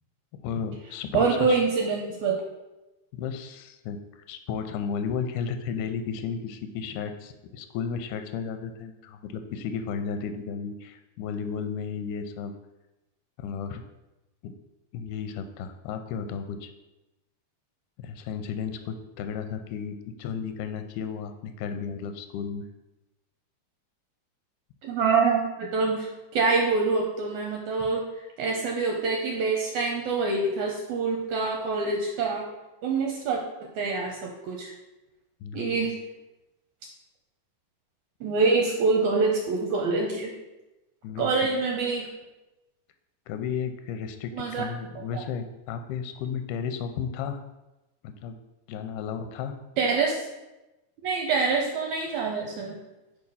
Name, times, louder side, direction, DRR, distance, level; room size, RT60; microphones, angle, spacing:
voice 1, 0.3-1.6 3.1-12.5 13.4-13.8 14.4-14.5 14.9-16.7 18.0-22.7 35.4-35.9 41.0-41.5 43.3-47.4 48.0-48.4 48.7-49.5, left 6 dB, 85° left, 7 dB, 2.1 m, -33 dB
voice 2, 1.1-2.4 24.8-28.1 28.4-32.5 32.8-34.7 35.5-35.9 38.2-40.3 41.2-42.1 44.3-44.6 45.0-45.2 49.8-50.2 51.0-52.8, right 4 dB, 80° right, 0 dB, 2.0 m, -26 dB
4.9 x 4.6 x 5.5 m, 1.0 s
omnidirectional pair, 3.6 m